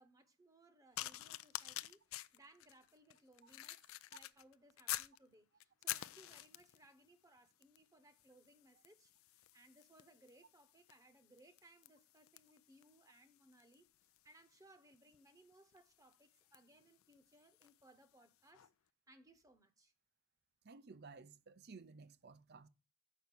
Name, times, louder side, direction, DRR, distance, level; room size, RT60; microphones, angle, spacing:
voice 1, 0.0-2.0 2.3-13.9 14.2-18.7 19.1-19.9, right 1 dB, 15° right, 0.9 m, -66 dB
sound 1, 1.0-5.2 5.6-6.9 7.6-7.9 8.1-17.8 18.5-18.7, left 15 dB, 75° left, 0.4 m, -49 dB
voice 2, 20.6-22.7, right 4 dB, 50° right, 0.6 m, -56 dB
7.8 x 5.8 x 6.6 m
head